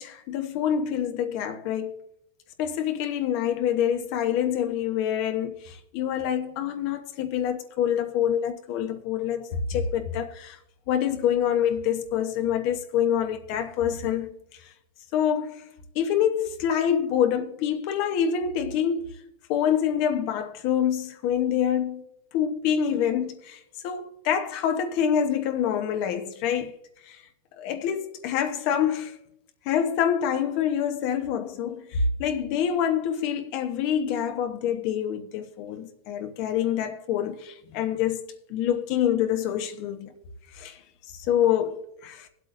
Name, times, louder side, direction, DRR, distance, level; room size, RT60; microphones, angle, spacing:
voice 1, 0.0-2.0 2.6-10.6 10.9-14.3 15.1-15.6 15.9-19.1 19.5-22.0 22.3-26.7 27.0-27.2 27.6-29.1 29.6-38.2 38.5-40.1 40.5-40.8 41.1-42.3, left 9 dB, 55° left, 1.0 m, -26 dB
21.5 x 8.1 x 2.6 m
supercardioid pair, 140°, 0 cm